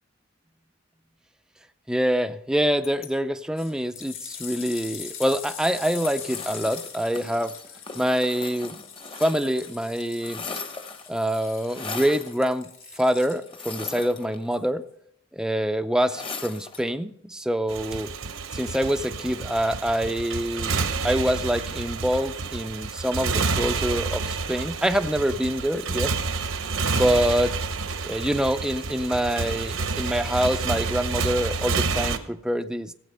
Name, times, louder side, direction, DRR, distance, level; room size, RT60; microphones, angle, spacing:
voice 1, 1.9-7.5 7.9-8.8 9.2-10.5 11.1-14.8 15.3-18.1 18.5-20.8 21.0-26.1 26.9-27.6 28.0-32.9, equal, 5° right, 10 dB, 0.4 m, -25 dB
sound 1, 2.8-3.1 3.6-13.7 14.5-14.6, left 8 dB, 75° left, 1.8 m, -41 dB
sound 2, 5.9-9.7 10.0-11.2 11.7-12.3 13.5-14.7 16.1-16.9, left 4 dB, 25° left, 0.9 m, -38 dB
Motorcycle, 17.7-32.2, right 4 dB, 80° right, 1.0 m, -29 dB
15.0 x 8.3 x 5.5 m, 0.73 s
head